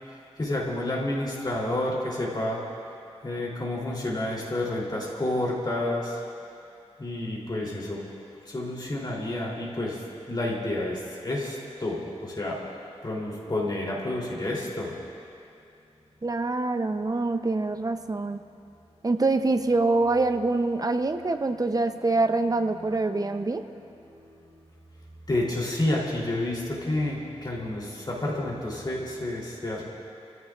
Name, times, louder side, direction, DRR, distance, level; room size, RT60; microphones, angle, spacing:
voice 1, 0.4-2.6 3.2-6.2 7.0-8.0 8.4-10.0 10.3-12.6 13.0-15.0 24.0-24.5 25.3-29.8, left 1 dB, 40° left, -4 dB, 3.3 m, -30 dB
voice 2, 16.2-18.4 19.0-23.6, right 3 dB, 35° right, 7 dB, 0.7 m, -25 dB
29.0 x 15.0 x 2.5 m, 2.6 s
wide cardioid pair, 100°, 11 cm